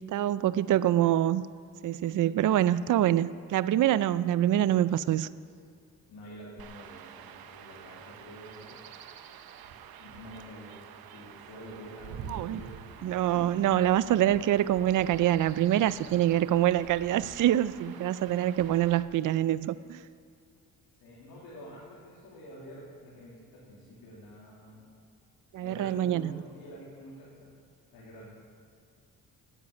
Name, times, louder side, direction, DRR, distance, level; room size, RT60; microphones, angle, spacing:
voice 1, 0.0-1.4 1.8-5.3 12.3-12.6 13.0-20.0 25.5-26.3, right 12 dB, 60° right, 16 dB, 0.5 m, -25 dB
voice 2, 6.1-8.9 9.4-13.7 15.7-15.8 16.0-16.1 20.9-24.8 25.6-27.6 27.9-28.3, equal, 85° left, -6 dB, 3.1 m, -48 dB
Chirp tweet / Wind / Stream, 6.6-19.0, right 8 dB, 80° right, 0.8 m, -47 dB
10.0 x 9.7 x 8.2 m, 2.3 s
cardioid pair, 75°, 36 cm